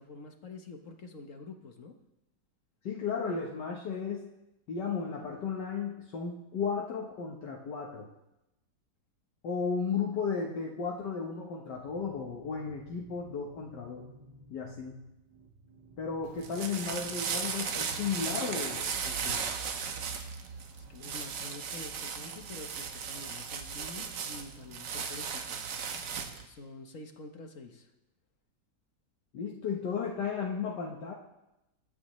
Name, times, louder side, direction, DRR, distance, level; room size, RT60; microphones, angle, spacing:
voice 1, 0.0-1.9 20.9-25.8 26.4-27.9, left 3 dB, 50° left, 4 dB, 1.3 m, -47 dB
voice 2, 2.8-4.3 4.7-8.1 9.4-14.1 14.5-15.0 16.0-19.4 29.3-31.1, left 5 dB, 70° left, -2 dB, 1.8 m, -34 dB
sound 1, 11.6-19.6, right 2 dB, 25° right, 1.1 m, -56 dB
sound 2, 16.2-26.5, right 6 dB, 80° right, 1.7 m, -36 dB
23.0 x 9.7 x 3.1 m, 0.93 s
omnidirectional pair, 1.9 m